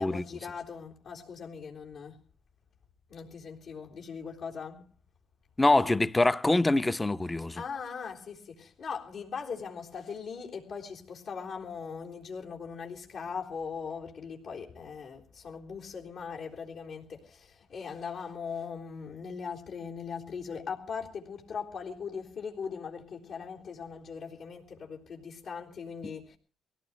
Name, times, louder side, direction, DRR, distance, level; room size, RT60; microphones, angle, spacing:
voice 1, 0.0-2.2 3.1-4.9 7.6-26.4, left 6 dB, 70° left, 3.8 m, -40 dB
voice 2, 5.6-7.6, left 2 dB, 15° left, 0.7 m, -24 dB
23.5 x 17.5 x 3.1 m
cardioid pair, 90°, 0 cm